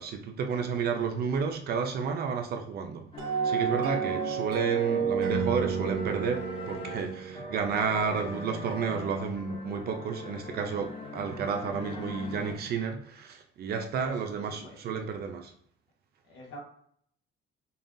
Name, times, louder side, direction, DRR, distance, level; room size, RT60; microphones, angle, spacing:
voice 1, 0.0-3.1 3.4-15.5, right 6 dB, 50° right, 0.5 m, -31 dB
sound 1, 3.1-12.5, left 3 dB, 25° left, 0.6 m, -42 dB
sound 2, 3.2-8.3, right 6 dB, 90° right, 0.9 m, -31 dB
voice 2, 14.0-14.8 16.3-16.6, equal, 65° left, 1.5 m, -47 dB
5.4 x 2.3 x 2.6 m
cardioid pair, 170°, 21 cm